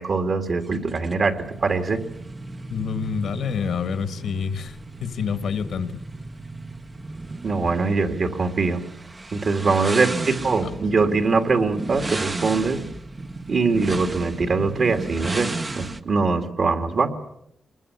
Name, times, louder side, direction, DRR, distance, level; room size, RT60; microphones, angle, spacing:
voice 1, 0.0-2.0 7.4-8.8 9.3-12.8 13.5-17.1, right 4 dB, 50° right, 7 dB, 2.5 m, -22 dB
sound 1, 0.6-16.0, right 2 dB, 25° right, 1.0 m, -34 dB
voice 2, 2.7-6.0 9.7-9.9 10.6-10.7, left 6 dB, 75° left, 10 dB, 2.0 m, -28 dB
24.5 x 21.5 x 8.2 m, 0.76 s
wide cardioid pair, 135°, 0 cm